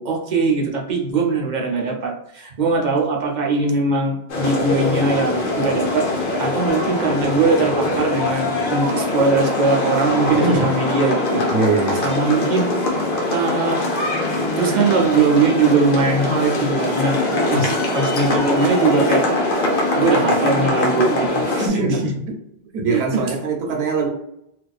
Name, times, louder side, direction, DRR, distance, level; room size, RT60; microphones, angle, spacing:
voice 1, 0.0-11.5 12.0-12.7 13.3-13.8 14.6-19.3 20.0-22.1 22.9-23.2, right 4 dB, 55° right, 1 dB, 0.6 m, -21 dB
sound 1, 4.3-21.7, left 2 dB, 60° left, 0.8 m, -22 dB
voice 2, 11.3-12.1 17.5-17.7 21.6-22.1 22.7-24.1, right 3 dB, 80° right, 1 dB, 0.9 m, -22 dB
2.5 x 2.2 x 2.3 m, 0.78 s
omnidirectional pair, 1.1 m